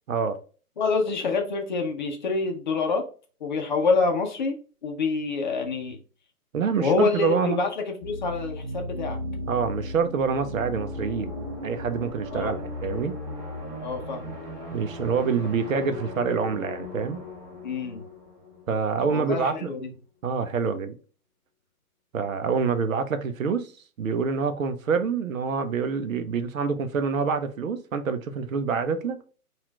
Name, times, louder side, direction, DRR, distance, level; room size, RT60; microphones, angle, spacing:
voice 1, 0.1-0.4 6.5-7.6 9.5-13.2 14.7-17.2 18.7-19.7 20.2-20.9 22.1-23.7 24.0-29.2, right 5 dB, 60° right, 0.8 m, -26 dB
voice 2, 0.8-3.0 3.4-4.6 4.8-6.0 6.8-9.2 12.3-12.5 13.8-14.4 17.6-18.0 19.0-19.9, left 4 dB, 30° left, 0.6 m, -26 dB
sound 1, 8.0-19.6, left 1 dB, 10° right, 1.6 m, -37 dB
4.2 x 2.5 x 4.4 m
hypercardioid pair, 145°, 46 cm